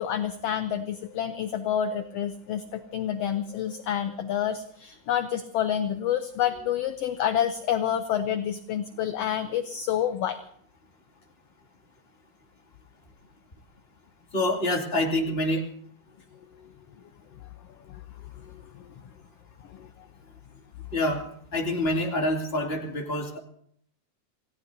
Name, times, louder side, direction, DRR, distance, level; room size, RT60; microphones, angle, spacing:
voice 1, 0.0-10.4 17.9-18.0 19.7-19.9, left 10 dB, 70° left, 9 dB, 1.6 m, -28 dB
voice 2, 14.3-15.6 20.9-21.2 21.5-23.4, left 1 dB, 20° left, 0 dB, 2.5 m, -26 dB
28.5 x 17.5 x 2.7 m, 0.67 s
omnidirectional pair, 3.4 m